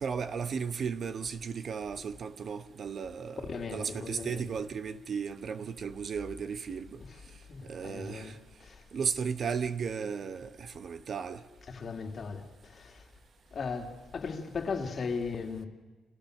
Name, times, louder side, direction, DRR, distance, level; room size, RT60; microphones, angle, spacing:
voice 1, 0.0-3.4 3.7-7.0 7.7-8.3 8.9-11.4, right 6 dB, 45° right, 1.0 m, -35 dB
voice 2, 3.5-4.5 7.1-7.2 7.5-8.8 11.7-13.0 13.5-15.7, left 5 dB, 40° left, 2.6 m, -37 dB
30.0 x 27.5 x 6.6 m
cardioid pair, 145°, 0 cm